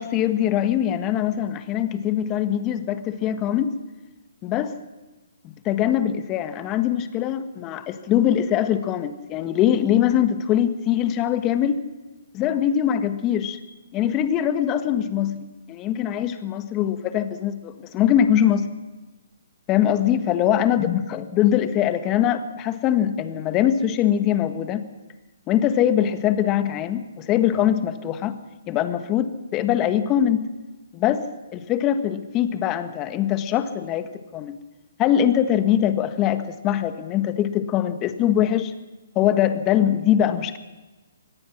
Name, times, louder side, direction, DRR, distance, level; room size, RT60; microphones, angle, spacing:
voice 1, 0.0-3.7 4.4-4.7 5.4-11.8 12.3-13.6 13.9-18.6 19.7-24.8 25.5-28.4 28.7-30.4 30.9-31.2 31.5-34.6 35.0-38.7 39.1-40.6, left 10 dB, 25° left, 10 dB, 1.5 m, -22 dB
25.0 x 18.5 x 6.2 m, 1.2 s
hypercardioid pair, 140°, 0 cm